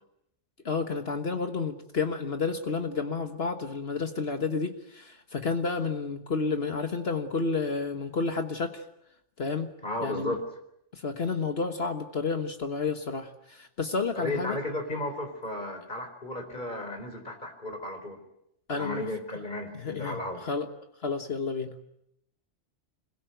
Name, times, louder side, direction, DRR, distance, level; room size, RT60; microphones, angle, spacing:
voice 1, 0.6-8.8 9.4-9.7 10.0-10.4 10.9-14.6 18.7-19.1 19.8-20.7 21.0-21.8, left 4 dB, 60° left, 6 dB, 1.7 m, -31 dB
voice 2, 9.8-10.4 14.2-18.2 18.7-20.4, left 1 dB, 40° left, 4 dB, 4.2 m, -34 dB
26.5 x 22.0 x 9.3 m, 0.78 s
omnidirectional pair, 1.2 m